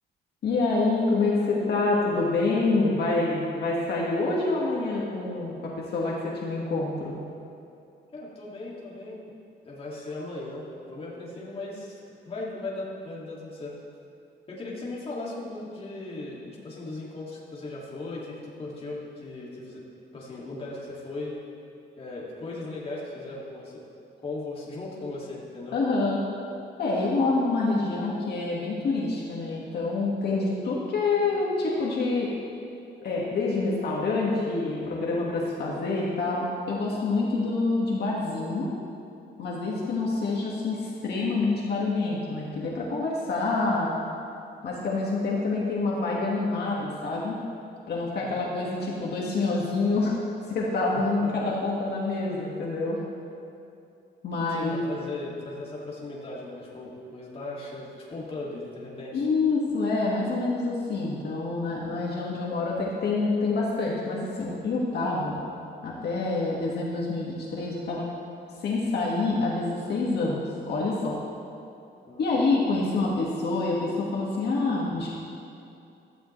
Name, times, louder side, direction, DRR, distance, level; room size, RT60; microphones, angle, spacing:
voice 1, 0.4-7.1 25.7-26.2 26.8-32.3 33.0-38.7 39.4-43.9 44.6-47.4 47.9-50.2 50.5-53.0 54.2-54.8 59.1-65.4 65.8-68.1 68.6-71.2 72.2-75.1, left 3 dB, 60° left, -4 dB, 2.0 m, -27 dB
voice 2, 8.1-9.2 9.6-12.0 12.3-13.7 14.5-19.8 20.1-21.3 22.0-23.8 24.2-25.8 48.2-48.6 50.9-51.5 54.5-59.3 72.1-72.3, left 2 dB, 30° left, -6 dB, 2.5 m, -37 dB
16.5 x 13.0 x 3.3 m, 2.6 s
wide cardioid pair, 175°, 19 cm